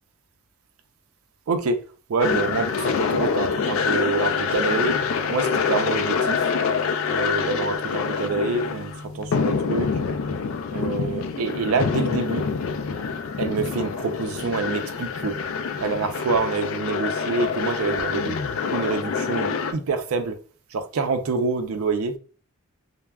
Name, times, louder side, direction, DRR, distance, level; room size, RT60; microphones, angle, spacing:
voice 1, 1.5-1.8 2.1-5.0 5.3-6.5 7.1-9.9 10.7-12.4 13.4-15.4 15.8-18.4 18.7-20.4 20.7-22.2, right 4 dB, 75° right, 0.4 m, -26 dB
sound 1, 2.2-19.7, left 5 dB, 65° left, 0.3 m, -26 dB
2.2 x 2.0 x 3.4 m
head